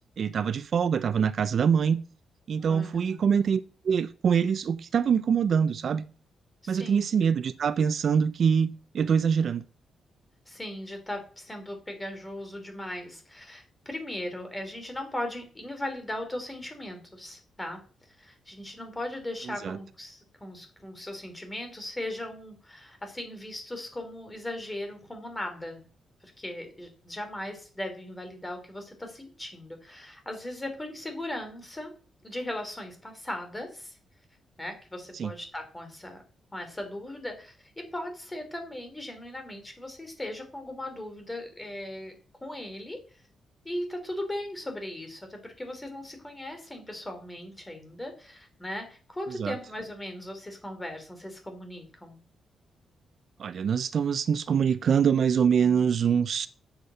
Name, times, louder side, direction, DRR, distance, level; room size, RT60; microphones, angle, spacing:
voice 1, 0.2-2.0 2.5-6.1 6.7-9.6 19.6-19.8 35.1-35.3 49.4-49.5 53.4-56.5, right 7 dB, 55° right, 0.5 m, -24 dB
voice 2, 2.7-3.2 6.6-7.0 10.5-17.8 18.2-25.8 26.2-31.9 32.2-34.0 34.6-36.2 36.5-42.1 42.4-43.0 43.6-52.2, left 1 dB, 10° left, 3.4 m, -38 dB
8.2 x 8.1 x 7.8 m
wide cardioid pair, 140°, 0 cm